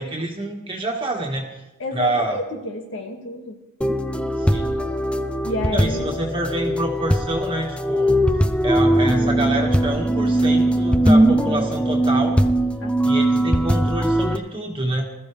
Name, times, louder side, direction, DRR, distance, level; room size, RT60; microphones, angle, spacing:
voice 1, 0.0-1.6 1.9-2.4 4.4-4.7 5.7-12.4 13.0-15.0, right 1 dB, 25° right, 0 dB, 1.7 m, -27 dB
voice 2, 1.8-3.6 5.4-6.1 12.8-13.5, left 1 dB, 65° left, 2 dB, 2.2 m, -30 dB
sound 1, 3.8-14.4, right 1 dB, 5° left, 0.5 m, -20 dB
20.5 x 14.0 x 3.4 m, 1.0 s
head